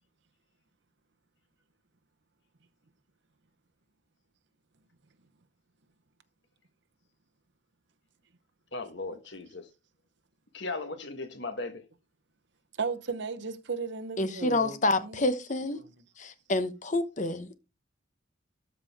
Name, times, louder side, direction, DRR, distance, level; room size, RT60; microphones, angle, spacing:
voice 1, 8.7-9.7 10.5-11.8, left 3 dB, 65° left, 1.4 m, -37 dB
voice 2, 12.8-15.4 15.7-15.9, right 4 dB, 60° right, 0.9 m, -35 dB
voice 3, 14.2-15.8 16.2-17.5, left 2 dB, 40° left, 0.9 m, -28 dB
13.0 x 5.0 x 3.5 m
head